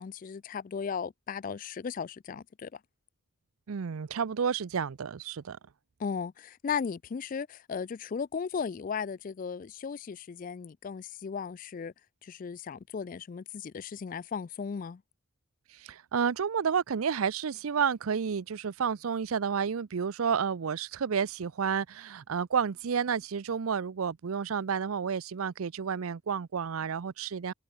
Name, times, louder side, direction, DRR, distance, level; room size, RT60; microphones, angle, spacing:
voice 1, 0.0-2.8 6.0-11.9 12.2-15.0, left 6 dB, 40° left, 0.3 m, -36 dB
voice 2, 3.7-5.6 15.8-27.5, right 6 dB, 90° right, 0.5 m, -30 dB
head